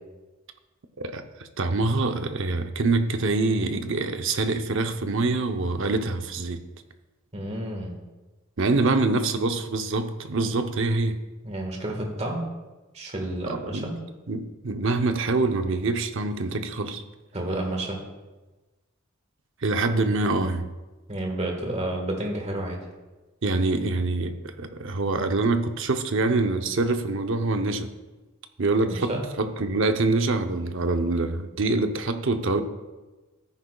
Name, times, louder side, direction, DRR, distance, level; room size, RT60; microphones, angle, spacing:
voice 1, 1.0-6.6 8.6-11.2 13.5-13.9 14.3-17.0 19.6-20.7 23.4-27.9 28.6-32.6, right 3 dB, 65° right, 0.8 m, -25 dB
voice 2, 7.3-8.0 11.4-12.4 12.9-13.9 17.3-18.0 21.1-22.8 28.9-29.2, right 1 dB, 30° right, 1.6 m, -30 dB
14.0 x 9.7 x 2.4 m
head